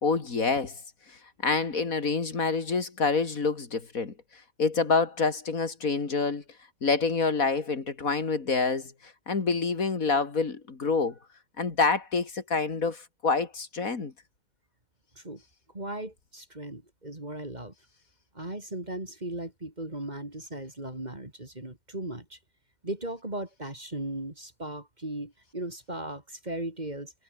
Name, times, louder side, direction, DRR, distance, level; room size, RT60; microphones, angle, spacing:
voice 1, 0.0-0.8 1.1-6.4 6.8-11.1 11.6-14.1, left 4 dB, 85° left, 3.0 m, -27 dB
voice 2, 15.7-17.7 18.3-22.4 22.8-27.1, right 1 dB, 30° right, 3.6 m, -37 dB
omnidirectional pair, 1.4 m